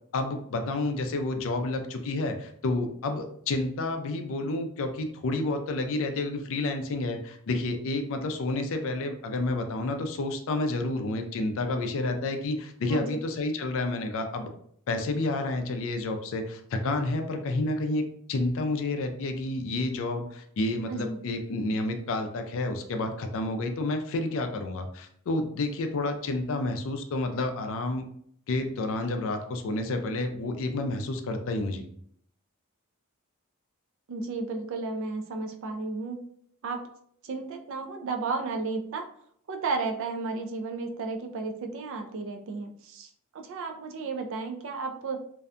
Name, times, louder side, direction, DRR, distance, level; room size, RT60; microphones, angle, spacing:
voice 1, 0.1-14.5 14.9-18.0 18.3-28.0 28.5-31.9, left 2 dB, 60° left, 6 dB, 0.4 m, -30 dB
voice 2, 20.9-21.2 34.1-36.2 36.6-36.9 37.2-39.1 39.5-45.2, right 3 dB, 60° right, 4 dB, 0.4 m, -33 dB
2.6 x 2.1 x 2.4 m, 0.66 s
head